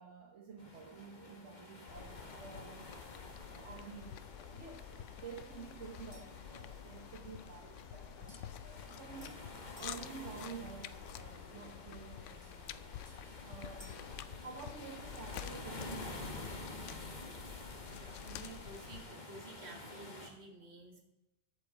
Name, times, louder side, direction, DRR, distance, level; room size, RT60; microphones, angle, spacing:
voice 1, 0.0-2.9 3.5-9.4 9.8-12.9 13.4-14.0 14.3-16.6 20.6-20.7, right 5 dB, 75° right, -1 dB, 1.5 m, -51 dB
sound 1, 0.6-20.3, left 2 dB, 40° left, 1.4 m, -50 dB
sound 2, 1.9-19.0, left 10 dB, 85° left, 0.9 m, -49 dB
sound 3, 6.1-6.5 8.3-10.0 12.4-14.1, left 1 dB, 5° left, 2.5 m, -62 dB
voice 2, 17.9-21.0, right 2 dB, 60° right, 2 dB, 2.1 m, -52 dB
14.0 x 5.3 x 4.8 m, 0.96 s
omnidirectional pair, 1.2 m